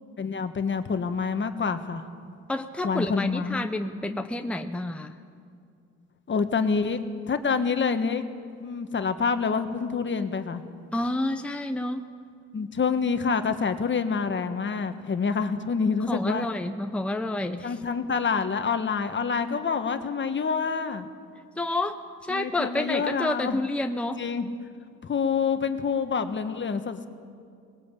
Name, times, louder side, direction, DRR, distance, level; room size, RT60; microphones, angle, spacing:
voice 1, 0.2-2.1 2.8-3.7 6.3-8.2 8.6-10.6 12.5-16.5 17.6-21.1 22.3-23.6 24.2-24.5 25.0-27.1, left 5 dB, 40° left, 8 dB, 1.4 m, -27 dB
voice 2, 2.5-5.2 10.9-12.0 16.1-17.8 21.6-24.2, left 2 dB, 5° left, 6 dB, 0.9 m, -29 dB
21.0 x 19.5 x 8.4 m, 2.3 s
cardioid pair, 90°, 30 cm